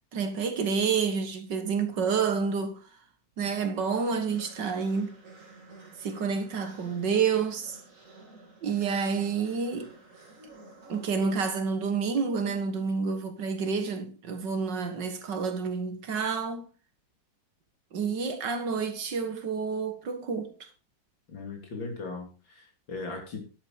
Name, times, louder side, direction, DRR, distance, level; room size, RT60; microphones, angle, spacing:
voice 1, 0.1-2.8 3.4-5.1 6.0-7.8 8.6-9.9 10.9-16.6 17.9-20.7, right 5 dB, 65° right, 2.2 m, -29 dB
sound 1, 3.6-12.1, right 3 dB, 45° right, 3.2 m, -52 dB
voice 2, 21.3-23.4, left 3 dB, 85° left, 3.7 m, -38 dB
10.5 x 8.3 x 4.8 m
omnidirectional pair, 2.0 m